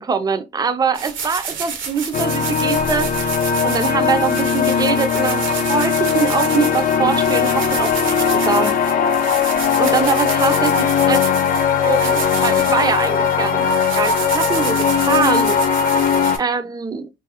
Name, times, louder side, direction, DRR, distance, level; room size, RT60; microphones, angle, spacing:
voice 1, 0.0-3.3 3.6-8.7 9.8-11.2 11.8-17.1, right 5 dB, 20° right, 0.4 m, -23 dB
sound 1, 0.9-16.4, right 6 dB, 80° right, 0.7 m, -30 dB
sound 2, 2.1-16.4, left 7 dB, 45° left, 0.4 m, -19 dB
2.4 x 2.4 x 2.7 m
cardioid pair, 90°, 20 cm